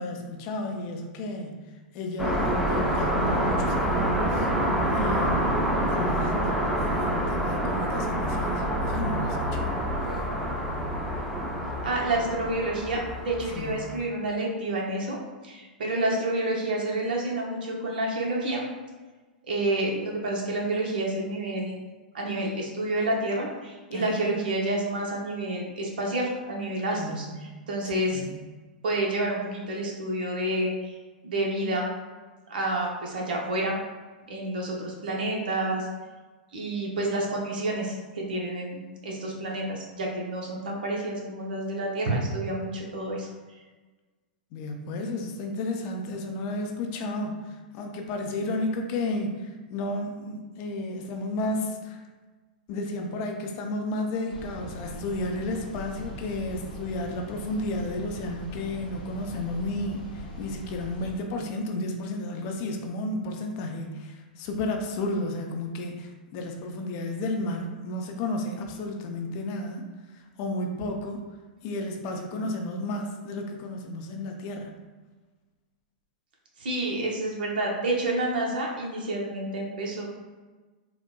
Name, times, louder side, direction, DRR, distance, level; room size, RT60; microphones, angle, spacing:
voice 1, 0.0-1.6 1.9-4.5 4.9-9.8 13.5-13.8 23.9-24.2 27.0-27.4 28.1-28.3 44.5-52.0 52.7-69.9 70.1-71.2 71.6-74.7, left 1 dB, 45° left, 3 dB, 0.5 m, -32 dB
sound 1, 2.2-14.0, equal, 5° right, 0.5 m, -27 dB
voice 2, 11.8-15.2 15.4-18.6 19.4-21.8 22.1-28.2 28.8-30.9 31.2-31.9 32.5-33.8 34.3-35.9 36.5-43.3 76.6-80.1, right 1 dB, 70° right, -1 dB, 0.7 m, -29 dB
sound 2, 54.3-61.1, left 1 dB, 75° left, 0.9 m, -41 dB
3.8 x 2.1 x 2.2 m, 1.3 s
hypercardioid pair, 105°, 5 cm